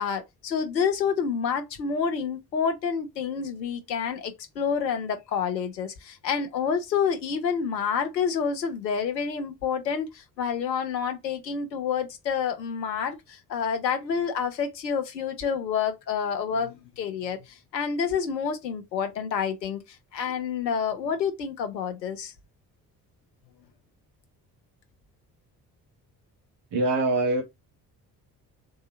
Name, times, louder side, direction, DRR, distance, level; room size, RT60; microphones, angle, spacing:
voice 1, 0.0-22.3, left 6 dB, 80° left, 0.8 m, -28 dB
voice 2, 26.7-27.4, right 2 dB, 55° right, 1.7 m, -23 dB
3.8 x 2.7 x 4.2 m
figure-of-eight pair, 45°, 49 cm